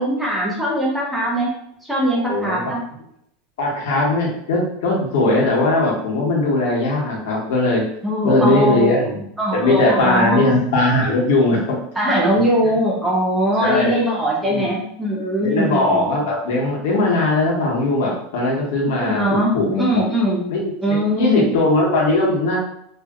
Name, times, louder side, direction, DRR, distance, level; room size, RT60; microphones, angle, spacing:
voice 1, 0.0-1.5 1.8-2.8 8.0-8.9 9.4-10.5 12.0-16.0 19.0-20.5 20.8-21.5, right 1 dB, 5° right, -5 dB, 0.6 m, -21 dB
voice 2, 2.1-2.7 3.6-7.8 8.2-9.2 9.5-11.8 12.3-12.7 13.6-14.0 14.4-14.7 15.4-19.2 19.5-20.0 20.5-22.6, left 2 dB, 70° left, -3 dB, 1.0 m, -19 dB
2.7 x 2.7 x 2.4 m, 0.72 s
supercardioid pair, 160°, 0 cm